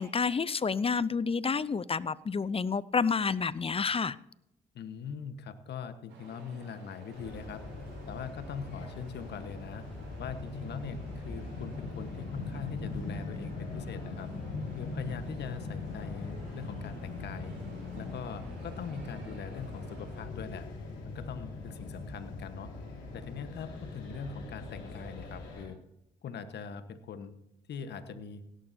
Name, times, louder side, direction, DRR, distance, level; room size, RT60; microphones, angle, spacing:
voice 1, 0.0-4.2, left 5 dB, 30° left, 19 dB, 0.6 m, -29 dB
voice 2, 4.7-7.6 8.1-9.8 10.2-14.3 14.7-17.5 17.9-20.7 21.0-22.7 23.1-25.8 26.2-27.3 27.7-28.4, left 6 dB, 70° left, 10 dB, 1.3 m, -42 dB
sound 1, 6.1-20.3, right 3 dB, 80° right, 4.8 m, -54 dB
sound 2, 7.1-25.7, left 3 dB, 85° left, 3.7 m, -41 dB
17.0 x 12.0 x 2.7 m, 0.79 s
supercardioid pair, 50°, 18 cm